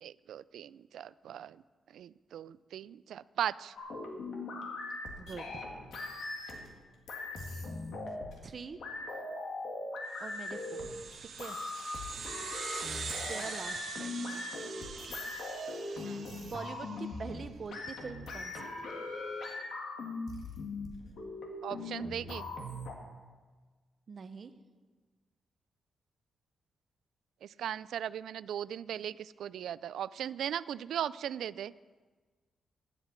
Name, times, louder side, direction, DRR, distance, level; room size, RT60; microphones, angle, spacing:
voice 1, 0.0-1.6 1.9-3.7 13.3-13.5 16.0-16.3 21.6-22.5 27.4-31.7, right 10 dB, 85° right, 18 dB, 0.3 m, -38 dB
sound 1, 3.8-6.7 7.1-8.5 8.8-22.9, left 2 dB, 65° left, 2.0 m, -40 dB
voice 2, 5.2-5.6 8.4-8.8 10.2-10.6 11.4-11.6 13.3-14.4 16.4-18.9 24.1-24.5, right 5 dB, 35° right, 10 dB, 0.7 m, -44 dB
sound 2, 10.2-17.1, right 6 dB, 55° right, 1.2 m, -43 dB
11.0 x 8.0 x 8.2 m, 1.4 s
wide cardioid pair, 170°, 0 cm